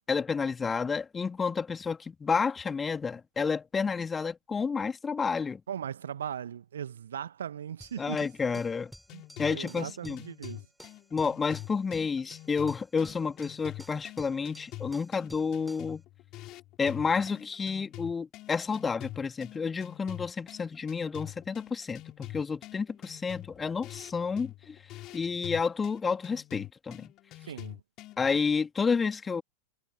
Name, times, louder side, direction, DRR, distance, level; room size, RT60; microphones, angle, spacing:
voice 1, 0.1-5.6 8.0-8.9 9.4-10.2 11.1-16.0 16.8-24.8 25.1-27.1 28.2-29.4, left 5 dB, 15° left, 2.4 m, -30 dB
voice 2, 5.7-8.2 9.1-9.2 9.5-10.6 27.4-27.8, right 9 dB, 65° right, 1.8 m, -38 dB
sound 1, 7.8-16.0, equal, ahead, 5.9 m, -53 dB
sound 2, 9.1-28.4, left 17 dB, 35° left, 6.0 m, -46 dB
figure-of-eight pair, 90°, 0 cm